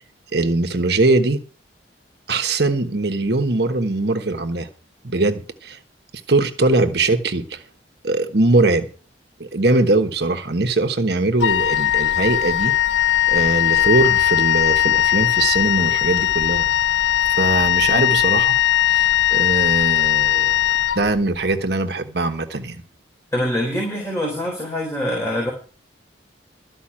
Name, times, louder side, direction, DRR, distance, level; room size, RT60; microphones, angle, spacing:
voice 1, 0.3-1.4 2.3-4.7 5.0-5.8 6.3-7.6 8.0-8.9 9.4-12.7 13.3-16.7 17.3-18.5 18.9-20.6 20.9-22.8, right 2 dB, 60° right, 1.2 m, -21 dB
Wind instrument woodwind instrument, 11.4-21.5, left 12 dB, 70° left, 0.5 m, -19 dB
voice 2, 23.3-25.5, equal, 15° left, 3.9 m, -24 dB
13.5 x 5.5 x 8.7 m
head